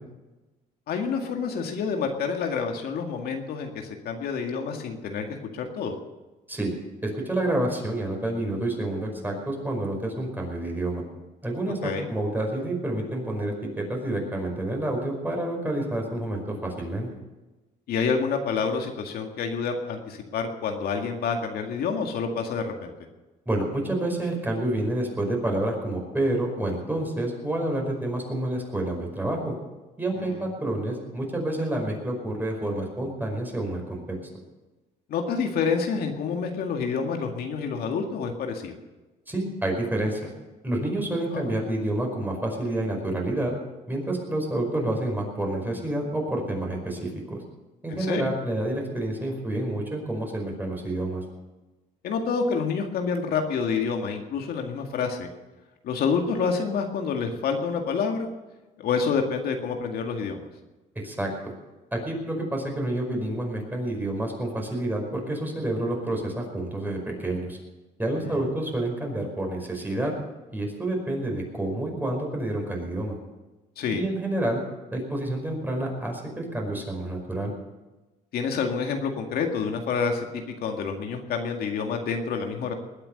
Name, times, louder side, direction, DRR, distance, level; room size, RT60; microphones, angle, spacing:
voice 1, 0.9-6.0 11.8-12.1 17.9-22.9 30.1-30.5 35.1-38.8 41.3-41.5 47.9-48.2 52.0-55.3 55.8-58.3 58.8-60.5 68.2-68.5 73.8-74.0 78.3-82.7, left 5 dB, 65° left, 3 dB, 2.0 m, -28 dB
voice 2, 7.0-11.0 11.4-17.1 23.4-29.5 30.0-34.2 39.3-40.3 40.6-43.5 43.9-47.4 47.8-51.2 61.0-61.3 61.9-67.6 68.0-70.1 70.5-73.1 73.9-74.6 74.9-77.5, right 1 dB, 10° right, 1 dB, 5.1 m, -28 dB
20.5 x 8.9 x 6.6 m, 1.1 s
cardioid pair, 110°, 17 cm